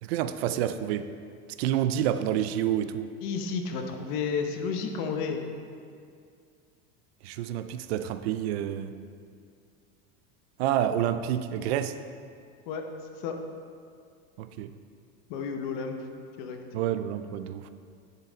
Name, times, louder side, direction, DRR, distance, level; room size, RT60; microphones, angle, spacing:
voice 1, 0.0-1.1 1.6-3.1 7.2-9.0 10.6-12.0 14.4-14.8 16.7-17.7, right 10 dB, 70° right, 11 dB, 0.5 m, -28 dB
voice 2, 3.2-5.4 12.7-12.8 13.1-13.4 15.3-15.9 16.4-16.6, left 5 dB, 45° left, 5 dB, 0.8 m, -31 dB
10.5 x 5.7 x 3.9 m, 2.3 s
supercardioid pair, 180°, 33 cm